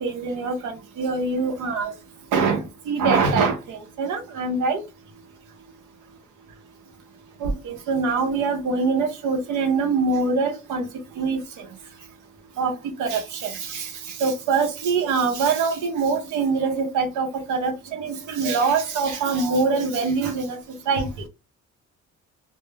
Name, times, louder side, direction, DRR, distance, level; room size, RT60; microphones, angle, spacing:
voice 1, 0.0-1.9 2.3-4.8 7.4-10.9 11.2-11.7 12.6-20.6 20.9-21.1, right 4 dB, 85° right, 0.7 m, -24 dB
2.1 x 2.0 x 3.1 m
cardioid pair, 90°, 30 cm